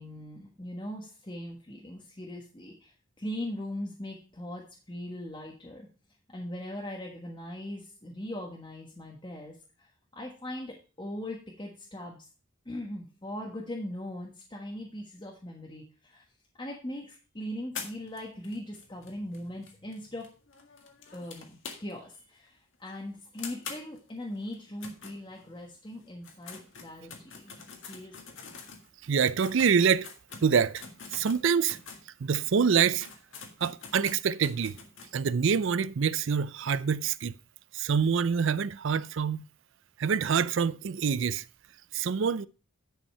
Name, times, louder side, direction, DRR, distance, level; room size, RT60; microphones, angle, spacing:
voice 1, 0.0-5.9 6.3-12.2 12.6-16.2 16.6-20.3 21.1-27.5 27.9-28.3, left 1 dB, 20° left, 1.3 m, -40 dB
sound 1, 17.7-22.2 22.5-22.6 22.9-23.0 23.4-25.7 26.1-32.1 32.5-32.6 32.8-35.1, left 5 dB, 55° left, 1.8 m, -45 dB
voice 2, 29.0-30.1 30.4-30.8 31.1-31.8 32.2-33.1 33.6-34.8 35.1-37.3 37.7-39.4 40.0-41.4 41.9-42.5, right 6 dB, 55° right, 0.4 m, -26 dB
10.5 x 5.5 x 5.4 m
head